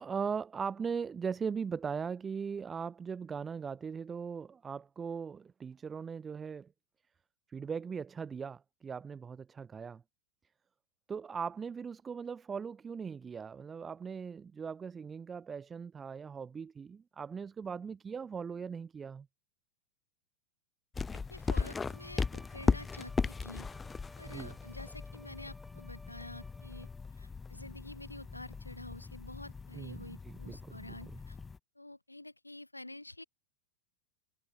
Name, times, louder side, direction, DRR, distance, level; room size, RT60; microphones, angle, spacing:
voice 1, 0.0-6.7 7.5-10.0 11.1-19.3 24.3-24.6 29.7-31.0, right 6 dB, 20° right, 0.4 m, -39 dB
sound 1, 20.9-31.6, left 4 dB, 15° left, 1.0 m, -37 dB
voice 2, 21.3-23.7 24.2-26.9 27.2-31.4 31.7-33.2, left 2 dB, 85° left, 1.2 m, -48 dB
Bowed string instrument, 21.4-27.2, right 1 dB, ahead, 1.3 m, -59 dB
figure-of-eight pair, 90°, 0 cm